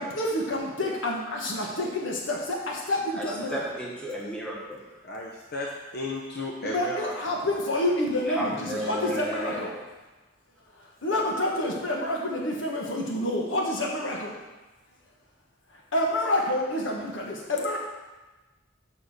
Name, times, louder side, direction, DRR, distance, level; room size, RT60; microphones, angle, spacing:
voice 1, 0.0-3.6 6.6-9.7 11.0-14.3 15.9-17.8, left 1 dB, 75° left, -1 dB, 1.5 m, -28 dB
voice 2, 3.2-4.8 8.3-9.7, equal, 5° left, -4 dB, 1.7 m, -33 dB
voice 3, 5.0-7.1 7.5-7.6, left 2 dB, 55° left, -2 dB, 1.0 m, -34 dB
6.8 x 5.6 x 6.5 m, 1.2 s
head